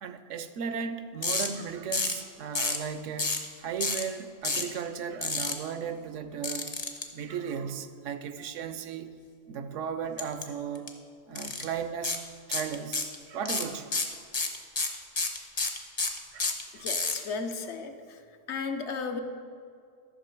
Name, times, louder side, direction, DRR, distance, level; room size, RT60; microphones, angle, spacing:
voice 1, 0.0-6.8 7.1-9.1 9.5-10.9 11.3-12.2 12.5-13.9 16.3-16.9, right 7 dB, 75° right, 10 dB, 0.9 m, -36 dB
sound 1, 1.2-1.5 1.9-2.2 2.5-2.8 3.2-3.5 3.8-4.0 4.4-4.7 5.2-5.5 6.4-7.0 10.2-10.4 10.7-10.9 11.3-11.6 12.0-12.2 12.5-13.1 13.4-17.2, left 3 dB, 30° left, 0.6 m, -29 dB
voice 2, 16.7-18.2 18.5-19.2, left 4 dB, 65° left, 6 dB, 1.0 m, -34 dB
13.0 x 6.3 x 4.5 m, 2.3 s
omnidirectional pair, 1.3 m